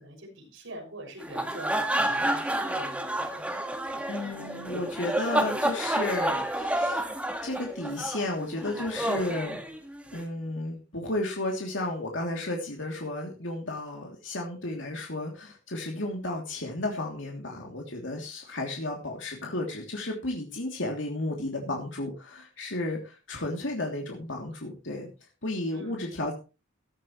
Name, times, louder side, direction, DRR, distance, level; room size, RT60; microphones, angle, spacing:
voice 1, 0.0-3.0 25.7-26.0, right 1 dB, 75° right, 1 dB, 6.7 m, -44 dB
sound 1, 1.2-10.2, right 1 dB, 5° right, 1.9 m, -30 dB
voice 2, 4.1-7.1 7.4-9.6 10.1-25.1 25.4-26.3, left 2 dB, 65° left, 0 dB, 3.1 m, -33 dB
15.5 x 13.0 x 3.2 m, 0.31 s
head